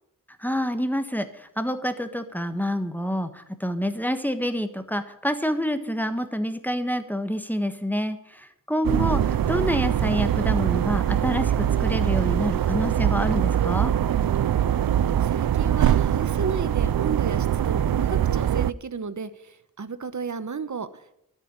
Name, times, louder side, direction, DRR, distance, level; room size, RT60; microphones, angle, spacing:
voice 1, 0.4-13.9, equal, 5° left, 9 dB, 1.3 m, -27 dB
sound 1, 8.8-18.7, right 10 dB, 85° right, 0.5 m, -23 dB
voice 2, 14.6-21.1, right 5 dB, 55° right, 13 dB, 1.1 m, -33 dB
13.0 x 8.6 x 9.7 m, 0.77 s
wide cardioid pair, 75°, 34 cm